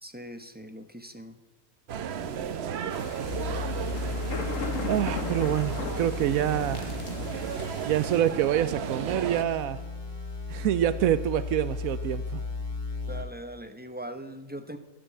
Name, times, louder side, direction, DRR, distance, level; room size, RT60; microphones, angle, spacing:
voice 1, 0.0-1.4 2.2-2.5 13.1-14.8, right 1 dB, 10° right, 8 dB, 0.7 m, -41 dB
sound 1, 1.9-9.4, right 8 dB, 55° right, 0.9 m, -34 dB
sound 2, 2.9-8.2, left 4 dB, 65° left, 1.7 m, -38 dB
sound 3, 3.2-13.2, left 4 dB, 35° left, 2.1 m, -36 dB
voice 2, 4.9-7.0 7.8-9.8 10.5-12.4, right 11 dB, 80° right, 14 dB, 1.0 m, -26 dB
12.0 x 8.7 x 8.6 m, 1.2 s
omnidirectional pair, 1.5 m